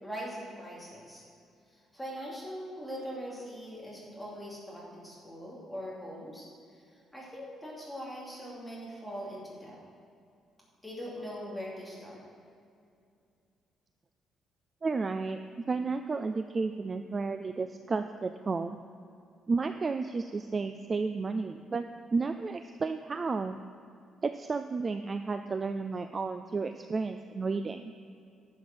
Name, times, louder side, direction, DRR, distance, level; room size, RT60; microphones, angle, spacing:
voice 1, 0.0-1.2 1.9-6.5 7.1-9.8 10.8-12.2, equal, 5° left, -6 dB, 2.8 m, -41 dB
voice 2, 14.8-18.8 19.5-21.9 22.1-23.6 24.2-27.9, right 4 dB, 25° right, 8 dB, 0.3 m, -32 dB
11.5 x 7.2 x 6.1 m, 2.4 s
cardioid pair, 175°, 0 cm